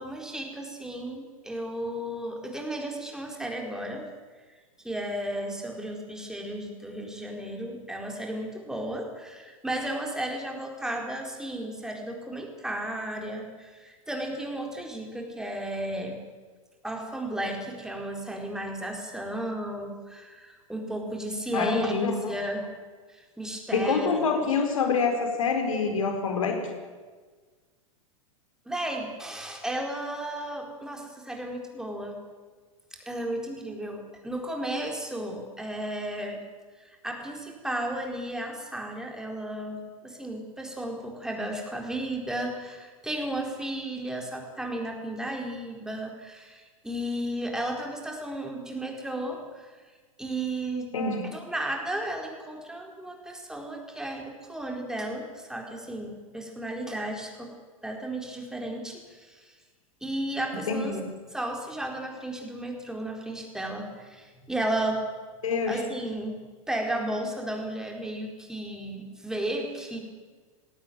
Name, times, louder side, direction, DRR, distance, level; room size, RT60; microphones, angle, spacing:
voice 1, 0.0-4.1 4.8-16.2 16.8-22.7 23.1-24.2 28.7-32.2 32.9-36.4 36.8-49.7 50.2-50.9 51.3-57.5 57.8-59.5 60.0-61.0 61.3-65.0 65.7-70.0, right 1 dB, 5° right, 2 dB, 4.4 m, -34 dB
voice 2, 21.5-22.3 23.7-26.6 50.9-51.4 60.7-61.0 65.4-65.8, left 4 dB, 65° left, 5 dB, 4.6 m, -26 dB
20.0 x 17.0 x 9.1 m, 1.4 s
figure-of-eight pair, 95°, 18 cm